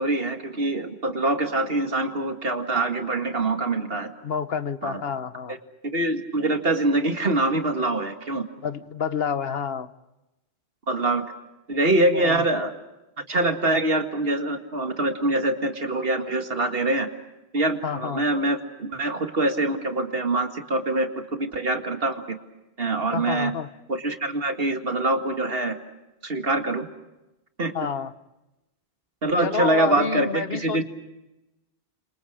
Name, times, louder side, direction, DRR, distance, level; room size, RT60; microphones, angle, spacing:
voice 1, 0.0-4.1 4.8-5.0 5.5-5.6 5.9-8.4 10.9-11.2 11.7-12.7 13.3-17.1 17.5-22.4 22.8-23.5 23.9-25.8 26.2-26.9 27.6-27.7 29.2-30.8, right 2 dB, 70° right, 6 dB, 2.3 m, -24 dB
voice 2, 4.2-5.6 8.6-9.9 12.1-12.4 17.8-18.3 23.1-23.7 27.7-28.1 29.4-30.8, left 6 dB, 70° left, 13 dB, 1.3 m, -29 dB
30.0 x 27.0 x 5.0 m, 0.97 s
omnidirectional pair, 1.0 m